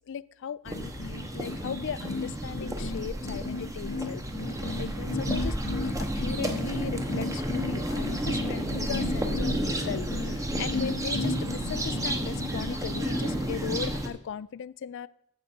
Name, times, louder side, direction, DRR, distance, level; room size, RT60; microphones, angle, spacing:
voice 1, 0.1-4.2 4.8-5.6 5.8-15.1, left 7 dB, 60° left, 19 dB, 0.3 m, -37 dB
sound 1, 0.6-14.1, right 1 dB, 15° right, 1.0 m, -31 dB
sound 2, 0.7-13.2, left 3 dB, 85° left, 0.9 m, -35 dB
14.5 x 5.2 x 4.4 m, 0.75 s
head